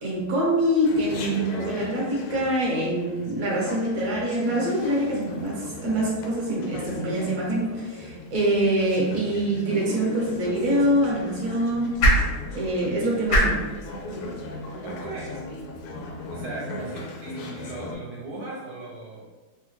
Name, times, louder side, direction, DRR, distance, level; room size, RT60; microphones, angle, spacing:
voice 1, 0.0-12.0 12.5-13.6, right 1 dB, 50° right, -6 dB, 1.1 m, -25 dB
Chatter, 0.8-17.9, left 2 dB, 80° left, 1.4 m, -38 dB
sound 1, 10.2-16.4, equal, 60° left, 0.8 m, -28 dB
voice 2, 14.8-15.4 16.3-19.3, right 2 dB, 80° right, -5 dB, 1.4 m, -37 dB
3.5 x 2.2 x 3.0 m, 1.2 s
omnidirectional pair, 2.4 m